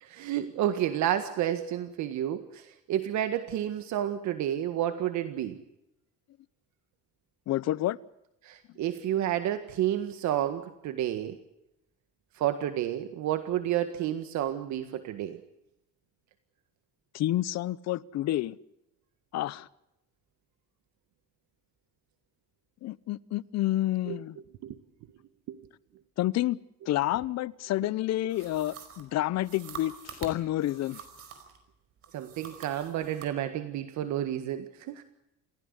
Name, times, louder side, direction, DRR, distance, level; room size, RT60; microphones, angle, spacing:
voice 1, 0.0-5.6 8.4-11.4 12.4-15.4 24.1-24.2 24.6-24.8 25.5-25.6 32.1-35.0, right 11 dB, 70° right, 1.7 m, -30 dB
voice 2, 7.5-8.0 17.1-18.6 19.3-19.7 22.8-24.4 26.2-26.6 26.9-31.0, left 14 dB, 60° left, 0.9 m, -29 dB
sound 1, 28.3-31.6 32.0-33.3, right 7 dB, 50° right, 5.0 m, -46 dB
29.0 x 16.0 x 8.2 m
cardioid pair, 150°, 30 cm